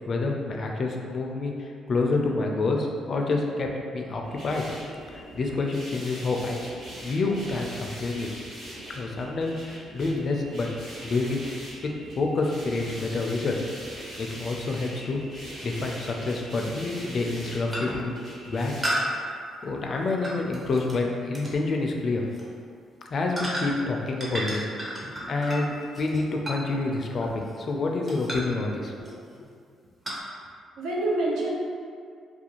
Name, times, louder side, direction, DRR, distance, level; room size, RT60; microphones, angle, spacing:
voice 1, 0.1-3.7 3.9-4.6 5.1-6.7 7.0-8.3 8.9-10.7 11.0-11.4 12.2-13.7 14.2-15.2 15.6-18.1 18.4-18.8 19.6-22.2 23.1-29.1, left 3 dB, 50° left, 1 dB, 0.3 m, -28 dB
sound 1, 4.2-18.8, right 1 dB, 60° right, 1.1 m, -42 dB
sound 2, 12.8-12.9 15.3-15.4 16.6-16.8 17.2-17.4 17.7-18.1 18.8-21.0 21.3-21.6 22.2-22.4 23.4-23.9 24.2-27.7 28.1-28.6 29.0-29.4 30.0-30.2, equal, 25° right, 0.6 m, -33 dB
voice 2, 24.9-25.4 29.3-29.4 30.8-31.5, right 2 dB, 80° right, -4 dB, 0.5 m, -28 dB
2.4 x 2.3 x 2.9 m, 2.2 s
cardioid pair, 90°, 0 cm